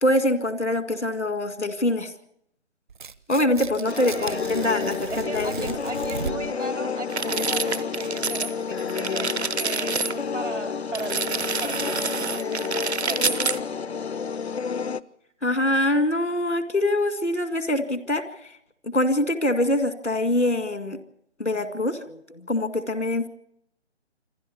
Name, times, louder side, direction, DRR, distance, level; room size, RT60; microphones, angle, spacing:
voice 1, 0.0-2.1 3.3-5.7 15.4-18.2 18.8-21.0 21.4-23.3, left 1 dB, 85° left, 10 dB, 2.3 m, -24 dB
Tearing, 2.9-6.6, right 5 dB, 45° right, 0.7 m, -37 dB
sound 1, 3.9-15.0, left 6 dB, 65° left, 0.7 m, -30 dB
voice 2, 4.0-4.5 5.1-12.7 13.1-13.4, right 2 dB, 85° right, 8 dB, 2.6 m, -37 dB
sound 2, 7.1-8.5 8.8-10.1 10.9-13.6, right 4 dB, 70° right, 1.0 m, -28 dB
27.0 x 12.0 x 8.3 m, 0.71 s
figure-of-eight pair, 145°, 35 cm